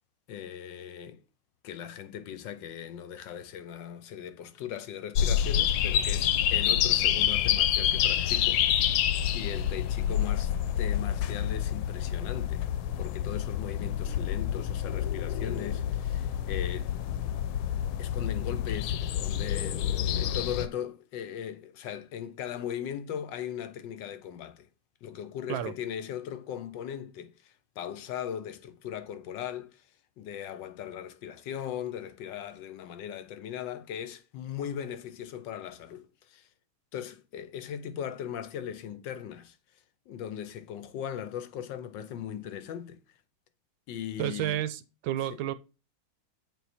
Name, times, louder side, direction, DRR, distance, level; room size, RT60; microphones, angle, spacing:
voice 1, 0.3-1.2 1.6-9.0 9.3-12.7 13.0-16.9 18.0-24.7 25.0-29.9 30.2-36.5 36.9-39.6 40.1-43.0 43.9-44.6 45.3-45.4, left 9 dB, 70° left, 1.2 m, -38 dB
sound 1, 5.2-20.7, left 10 dB, 85° left, 1.5 m, -28 dB
voice 2, 44.2-45.5, right 13 dB, 80° right, 1.4 m, -31 dB
8.2 x 4.0 x 4.2 m
omnidirectional pair, 2.3 m